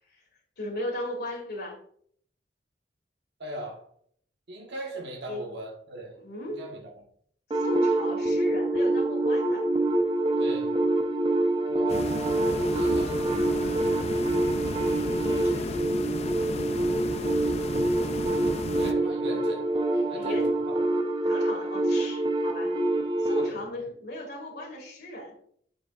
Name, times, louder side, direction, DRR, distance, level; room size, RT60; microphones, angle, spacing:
voice 1, 0.6-1.8 5.3-5.5 6.1-6.6 7.5-9.7 15.2-15.8 19.0-19.1 19.9-20.5 21.2-22.7 23.2-25.3, left 1 dB, 55° left, -1 dB, 2.1 m, -37 dB
voice 2, 3.4-3.8 4.5-6.1 6.6-6.9 10.4-10.8 11.6-13.9 18.7-20.8 23.4-23.7, right 1 dB, 60° right, 0 dB, 1.5 m, -40 dB
sound 1, 7.5-23.5, right 2 dB, 25° right, 0.7 m, -26 dB
sound 2, 11.9-18.9, left 2 dB, 35° left, 0.5 m, -34 dB
7.1 x 6.8 x 2.4 m, 0.62 s
head